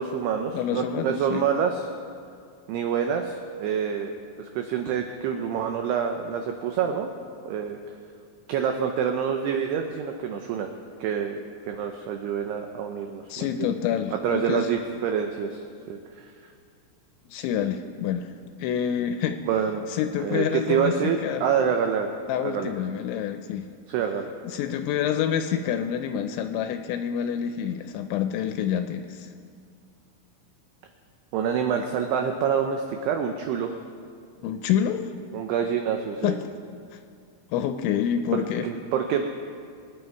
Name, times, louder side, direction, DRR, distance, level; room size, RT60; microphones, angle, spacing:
voice 1, 0.0-1.9 2.7-7.1 7.5-7.8 8.5-10.7 11.0-13.7 14.1-15.6 15.9-16.3 19.5-19.9 20.2-22.1 22.4-22.7 23.9-24.3 31.3-33.7 35.3-36.4 38.3-39.3, right 7 dB, 90° right, 5 dB, 2.3 m, -27 dB
voice 2, 0.5-1.4 13.3-14.7 17.3-18.3 18.6-19.4 19.9-21.4 22.3-23.7 24.4-29.3 34.4-35.1 36.2-36.5 36.9-37.0 37.5-38.7, left 9 dB, 85° left, 8 dB, 2.7 m, -27 dB
23.5 x 9.7 x 4.6 m, 2.3 s
omnidirectional pair, 5.7 m